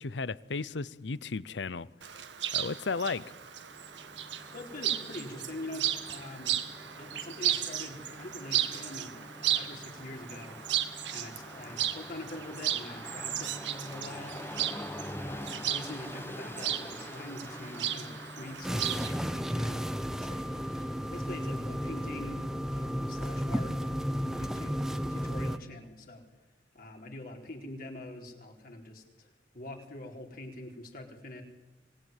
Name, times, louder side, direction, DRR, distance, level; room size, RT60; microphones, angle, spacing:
voice 1, 0.0-1.9 2.5-3.2, left 4 dB, 75° left, 19 dB, 0.7 m, -34 dB
Chirp tweet, 2.0-19.1, right 11 dB, 85° right, 1.6 m, -35 dB
Train, 3.4-22.0, left 1 dB, 15° left, 1.4 m, -46 dB
voice 2, 4.5-6.6 6.9-10.6 11.1-14.8 15.2-20.6 21.1-26.2 26.7-31.4, left 1 dB, 55° left, 1 dB, 4.2 m, -44 dB
sound 1, 18.6-25.6, equal, 5° right, 1.0 m, -33 dB
25.5 x 19.5 x 9.2 m, 1.1 s
head